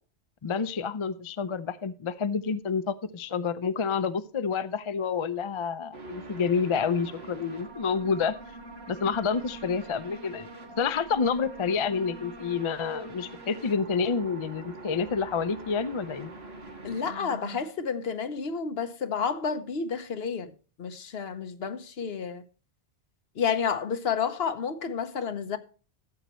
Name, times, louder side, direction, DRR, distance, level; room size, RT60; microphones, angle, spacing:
voice 1, 0.4-8.4 8.9-10.5 10.8-16.3, left 5 dB, 40° left, 0.4 m, -28 dB
sound 1, 5.9-17.6, right 2 dB, 65° right, 2.1 m, -44 dB
voice 2, 16.8-20.5 20.8-22.4 23.4-25.6, left 6 dB, 65° left, 1.1 m, -30 dB
13.5 x 7.9 x 3.0 m
omnidirectional pair, 1.2 m